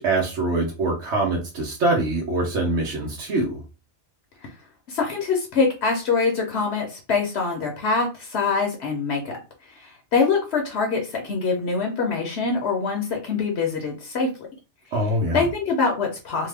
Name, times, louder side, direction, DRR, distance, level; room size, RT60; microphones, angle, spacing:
voice 1, 0.0-3.6 14.9-15.4, right 2 dB, 80° right, -2 dB, 1.0 m, -24 dB
voice 2, 4.9-9.3 9.7-14.3 15.3-16.5, left 4 dB, 70° left, 1 dB, 0.9 m, -24 dB
2.7 x 2.1 x 3.2 m, 0.32 s
omnidirectional pair, 1.2 m